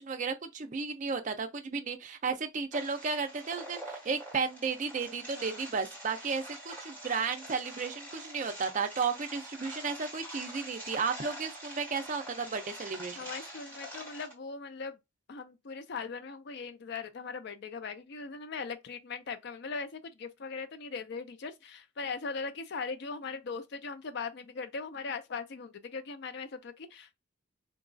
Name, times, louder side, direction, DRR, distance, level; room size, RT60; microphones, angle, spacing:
voice 1, 0.0-13.2, right 5 dB, 35° right, 0.4 m, -33 dB
sound 1, 2.7-14.3, right 1 dB, 10° left, 1.2 m, -45 dB
voice 2, 13.2-15.0 15.3-27.1, left 4 dB, 55° left, 0.4 m, -39 dB
3.8 x 2.3 x 2.5 m
head